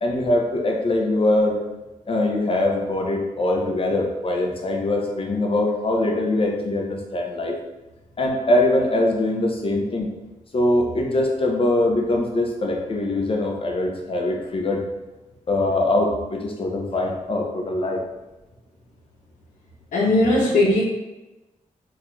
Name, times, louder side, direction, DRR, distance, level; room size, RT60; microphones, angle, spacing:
voice 1, 0.0-1.6 2.1-7.5 8.2-10.1 10.5-14.8 15.5-18.0, left 1 dB, 40° left, 1 dB, 0.6 m, -22 dB
voice 2, 19.9-20.8, left 2 dB, 85° left, -9 dB, 0.7 m, -18 dB
3.7 x 2.3 x 3.0 m, 1.1 s
cardioid pair, 85°, 14 cm